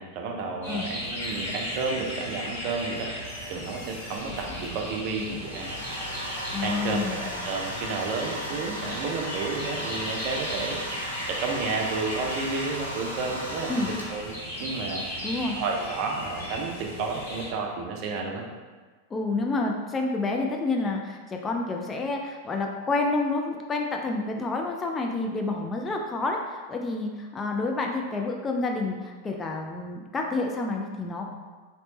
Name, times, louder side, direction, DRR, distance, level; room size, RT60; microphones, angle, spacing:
voice 1, 0.0-5.7 6.6-14.3 14.6-18.5, right 4 dB, 45° right, 1 dB, 0.5 m, -32 dB
sound 1, 0.6-17.5, equal, 70° left, 1.4 m, -37 dB
Squeak, 1.1-5.8, left 2 dB, 50° left, 0.7 m, -45 dB
Domestic sounds home sounds, 5.2-14.4, equal, 85° right, 0.6 m, -36 dB
voice 2, 6.5-7.3 13.7-13.9 15.2-15.6 19.1-31.3, left 3 dB, 20° left, 2 dB, 0.3 m, -29 dB
3.1 x 2.9 x 3.0 m, 1.4 s
figure-of-eight pair, 90°, 0 cm